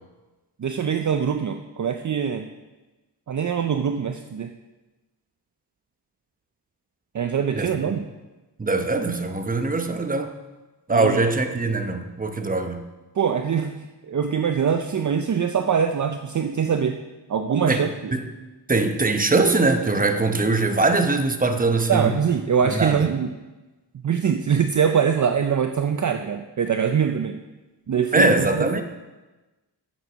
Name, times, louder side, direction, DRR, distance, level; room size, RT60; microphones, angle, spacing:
voice 1, 0.6-2.5 3.3-4.5 7.1-8.0 10.9-11.2 13.2-13.7 14.1-17.0 17.3-18.1 21.9-23.3 24.0-27.4 27.9-28.7, right 7 dB, 45° right, 7 dB, 0.6 m, -23 dB
voice 2, 8.6-10.3 10.9-12.8 17.7-17.8 18.1-18.2 18.7-22.1 22.6-23.1 28.1-28.8, right 3 dB, 20° right, 6 dB, 0.9 m, -22 dB
9.6 x 7.5 x 6.1 m, 1.1 s
wide cardioid pair, 120°, 42 cm